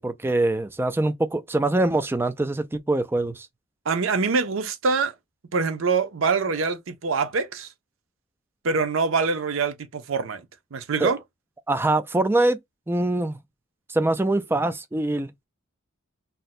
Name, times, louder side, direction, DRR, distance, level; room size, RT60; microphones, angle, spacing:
voice 1, 0.0-3.5 11.0-11.1 11.7-12.6 12.9-13.4 13.9-15.3, right 2 dB, 10° right, 0.3 m, -23 dB
voice 2, 3.9-5.1 5.5-7.7 8.6-10.4 10.7-11.2, right 4 dB, 80° right, 0.6 m, -24 dB
2.6 x 2.1 x 4.0 m
head